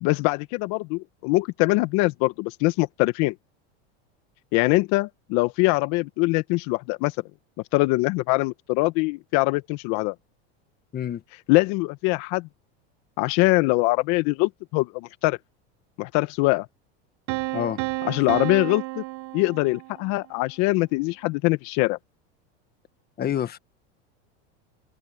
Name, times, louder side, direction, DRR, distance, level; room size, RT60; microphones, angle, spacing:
voice 1, 0.0-3.3 4.5-7.2 7.7-10.1 11.5-12.5 13.2-15.4 16.0-16.7 18.0-19.0 19.3-22.0, left 23 dB, 55° left, 1.2 m, -23 dB
Piano, 17.3-20.2, right 23 dB, 55° right, 1.2 m, -31 dB
voice 2, 23.2-23.6, left 10 dB, 30° left, 1.5 m, -27 dB
open air
supercardioid pair, 120°, 33 cm